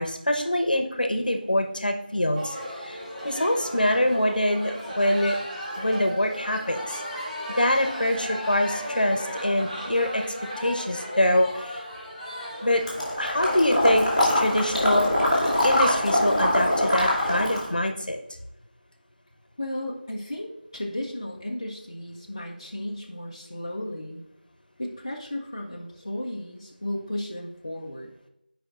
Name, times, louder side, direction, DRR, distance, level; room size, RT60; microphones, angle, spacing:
voice 1, 0.0-3.0 3.2-5.4 5.8-7.0 7.6-10.2 10.6-11.8 12.6-12.8 13.2-14.0 14.3-15.1 15.6-18.2, left 1 dB, 60° left, 5 dB, 1.0 m, -24 dB
sound 1, 2.3-16.5, equal, 40° right, 2.8 m, -35 dB
Water / Liquid, 12.9-17.7, left 1 dB, ahead, 1.1 m, -23 dB
voice 2, 19.6-24.2 24.8-28.1, left 1 dB, 30° left, -3 dB, 0.7 m, -34 dB
13.5 x 5.1 x 2.5 m, 0.82 s
figure-of-eight pair, 175°, 5 cm